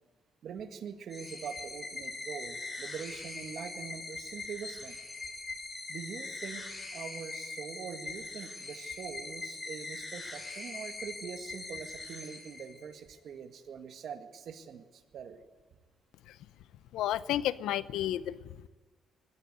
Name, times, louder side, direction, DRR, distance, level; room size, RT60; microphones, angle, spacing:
voice 1, 0.4-5.0 5.9-6.6 6.9-15.4, right 7 dB, 65° right, 7 dB, 1.8 m, -43 dB
sound 1, 1.1-13.0, left 3 dB, 30° left, 6.3 m, -42 dB
voice 2, 16.9-18.7, left 12 dB, 90° left, 16 dB, 0.7 m, -32 dB
20.5 x 15.0 x 9.5 m, 1.3 s
cardioid pair, 90°, 0 cm